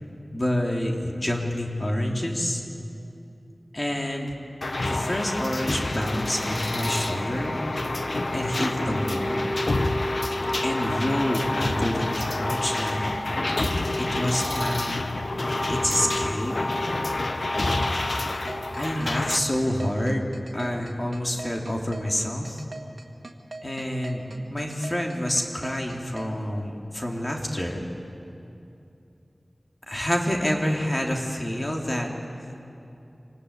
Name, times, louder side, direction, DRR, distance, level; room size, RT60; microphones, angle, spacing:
voice 1, 0.3-2.6 3.7-4.3 4.8-7.5 8.3-9.5 10.6-13.0 14.0-15.1 15.7-16.6 18.8-22.6 23.6-27.9 29.9-32.1, left 1 dB, 35° left, 0 dB, 3.3 m, -28 dB
sound 1, 4.6-19.4, left 2 dB, 65° left, 1.1 m, -27 dB
sound 2, 17.9-26.3, right 2 dB, 70° right, 1.8 m, -40 dB
25.5 x 19.0 x 8.4 m, 2.7 s
wide cardioid pair, 45°, 0 cm